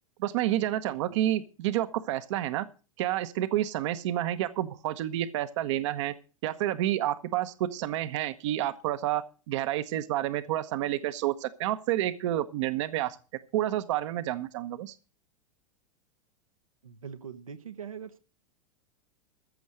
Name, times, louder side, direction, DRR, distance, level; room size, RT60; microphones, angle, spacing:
voice 1, 0.2-2.7 3.0-6.1 6.4-13.2 13.5-14.9, right 13 dB, 60° right, 13 dB, 1.0 m, -29 dB
voice 2, 16.8-18.2, right 7 dB, 85° right, 10 dB, 1.2 m, -42 dB
14.5 x 6.4 x 7.9 m, 0.36 s
hypercardioid pair, 95°, 17 cm